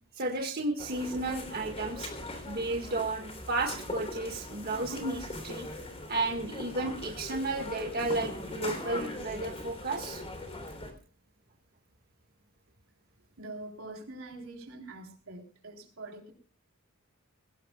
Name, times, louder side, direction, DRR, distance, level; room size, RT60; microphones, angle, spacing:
voice 1, 0.1-2.1 2.4-5.7 6.1-10.2, right 2 dB, 50° right, 1 dB, 1.8 m, -33 dB
sound 1, 0.8-10.9, left 1 dB, 30° left, 3.5 m, -40 dB
voice 2, 13.4-16.3, right 2 dB, 80° right, 2 dB, 3.8 m, -44 dB
21.5 x 17.5 x 2.4 m, 0.40 s
head